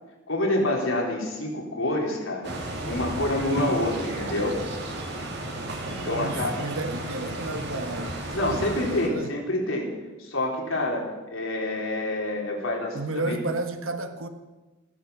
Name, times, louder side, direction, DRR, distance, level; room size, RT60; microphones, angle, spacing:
voice 1, 0.3-2.5 2.8-4.6 5.9-6.5 8.3-9.9 10.2-13.4, left 1 dB, 80° left, -1 dB, 3.6 m, -27 dB
sound 1, 2.4-9.1, right 1 dB, 55° right, 2.7 m, -33 dB
voice 2, 5.9-9.3 12.9-14.3, right 2 dB, 85° right, 8 dB, 1.4 m, -32 dB
15.0 x 10.0 x 7.1 m, 1.2 s
head